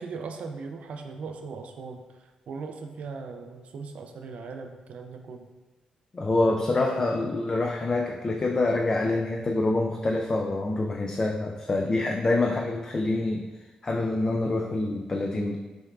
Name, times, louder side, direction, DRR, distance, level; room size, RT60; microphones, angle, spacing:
voice 1, 0.0-5.5 6.5-7.3, right 4 dB, 70° right, 4 dB, 0.4 m, -39 dB
voice 2, 6.1-13.5 13.8-15.6, left 2 dB, 35° left, 1 dB, 0.3 m, -26 dB
6.2 x 2.3 x 2.3 m, 1.2 s
cardioid pair, 75°, 2 cm